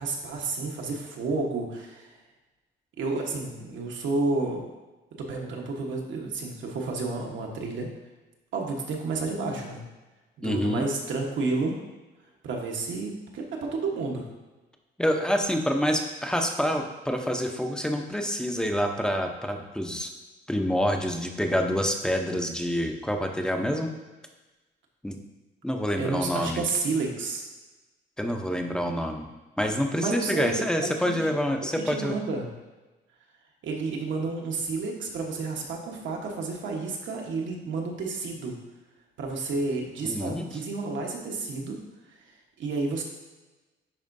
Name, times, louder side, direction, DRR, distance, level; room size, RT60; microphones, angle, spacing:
voice 1, 0.0-2.1 3.0-4.6 5.3-7.9 8.5-9.8 10.4-11.8 12.4-14.2 26.0-27.4 30.0-31.1 31.9-32.5 33.6-38.5 39.2-41.8 42.6-43.0, right 3 dB, 70° right, 0 dB, 1.3 m, -30 dB
voice 2, 10.4-10.8 15.0-20.1 20.5-23.9 25.0-25.2 25.6-26.6 28.2-29.2 29.6-32.1 40.0-40.5, equal, 5° left, 4 dB, 0.7 m, -27 dB
10.5 x 4.3 x 2.7 m, 1.2 s
cardioid pair, 90°, 20 cm